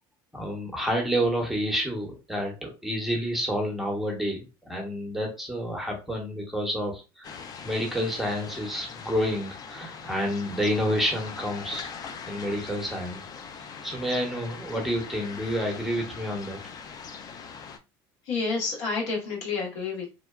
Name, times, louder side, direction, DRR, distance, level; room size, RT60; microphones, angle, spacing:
voice 1, 0.3-11.9 12.3-13.2 13.8-16.6, equal, ahead, 0 dB, 0.9 m, -29 dB
sound 1, 7.2-17.8, left 6 dB, 35° left, 0.4 m, -41 dB
voice 2, 18.3-20.1, left 4 dB, 80° left, -2 dB, 1.3 m, -29 dB
2.8 x 2.1 x 2.3 m, 0.28 s
supercardioid pair, 110°, 11 cm